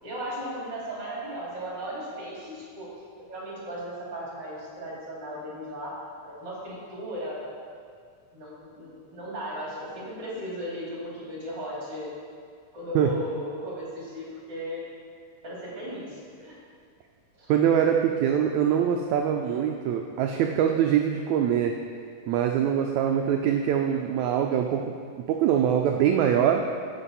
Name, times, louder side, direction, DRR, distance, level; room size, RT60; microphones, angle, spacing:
voice 1, 0.0-2.9 3.2-5.9 6.2-7.4 8.3-12.1 12.7-14.8 15.4-16.6 17.4-17.5, equal, 35° right, -6 dB, 3.1 m, -36 dB
voice 2, 17.5-21.8 22.3-26.6, right 9 dB, 90° right, 3 dB, 1.6 m, -23 dB
11.0 x 8.2 x 4.2 m, 2.2 s
omnidirectional pair, 3.9 m